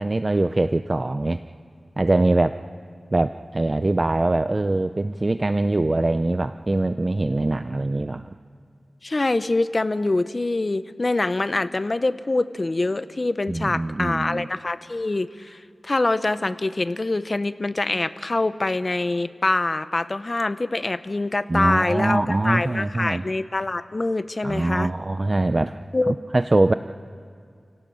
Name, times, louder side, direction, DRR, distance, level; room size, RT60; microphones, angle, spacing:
voice 1, 0.0-1.4 2.0-2.6 3.1-8.3 13.5-14.5 21.5-23.2 24.4-25.8 26.1-26.7, right 2 dB, 35° right, 11 dB, 0.5 m, -23 dB
voice 2, 9.0-24.9 25.9-26.1, left 2 dB, 40° left, 13 dB, 0.8 m, -24 dB
30.0 x 17.5 x 6.3 m, 2.3 s
wide cardioid pair, 70°, 0 cm